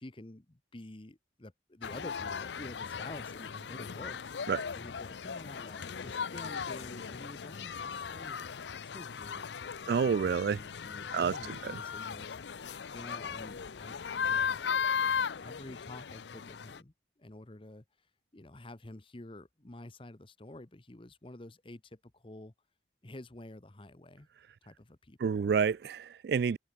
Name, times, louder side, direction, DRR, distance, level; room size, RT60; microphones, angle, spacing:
voice 1, 0.0-4.5 4.7-8.4 8.8-9.5 9.9-12.4 12.9-14.6 15.4-18.1 18.3-22.5 23.0-24.3 24.6-25.6, left 1 dB, 30° left, 1.0 m, -49 dB
sound 1, 1.8-16.8, left 6 dB, 75° left, 0.6 m, -37 dB
voice 2, 9.9-10.6 11.1-11.4 11.6-11.8 25.2-26.6, right 6 dB, 60° right, 0.3 m, -28 dB
head